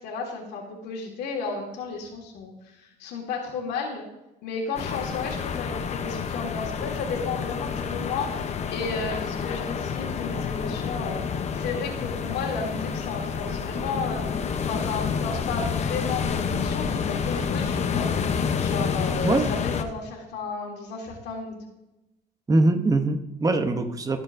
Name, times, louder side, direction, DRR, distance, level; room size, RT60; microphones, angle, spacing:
voice 1, 0.0-4.0 4.4-11.2 11.5-14.3 14.7-18.1 18.6-21.6, left 4 dB, 85° left, -1 dB, 1.8 m, -33 dB
sound 1, 4.7-19.8, left 6 dB, 40° left, 0.8 m, -29 dB
voice 2, 22.5-24.2, right 2 dB, 20° right, 7 dB, 0.9 m, -22 dB
16.5 x 6.6 x 2.6 m, 0.93 s
cardioid pair, 110°, 17 cm